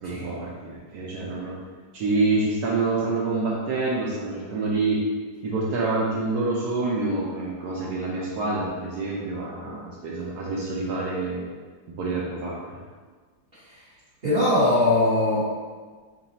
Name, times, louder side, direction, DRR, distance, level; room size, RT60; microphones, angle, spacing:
voice 1, 0.0-1.5 1.9-5.0 5.4-11.4 12.0-12.8, right 3 dB, 70° right, -4 dB, 1.0 m, -27 dB
voice 2, 14.2-15.4, left 2 dB, 35° right, -12 dB, 1.2 m, -21 dB
4.0 x 2.3 x 4.0 m, 1.5 s
omnidirectional pair, 2.0 m